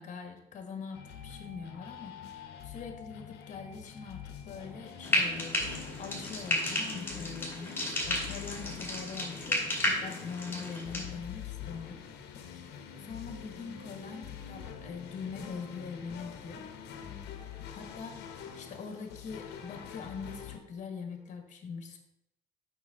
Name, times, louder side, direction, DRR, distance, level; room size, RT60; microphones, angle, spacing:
voice 1, 0.0-5.6 6.0-12.0 12.3-16.6 17.7-22.0, left 5 dB, 45° left, 5 dB, 1.4 m, -43 dB
sound 1, 0.9-20.6, left 9 dB, 80° left, 0.9 m, -46 dB
sound 2, 4.2-20.8 21.1-21.4, left 1 dB, 65° right, 2.2 m, -55 dB
Frying (food), 5.0-11.1, left 1 dB, 15° left, 2.3 m, -33 dB
6.2 x 5.7 x 3.8 m, 0.83 s
cardioid pair, 110°, 17 cm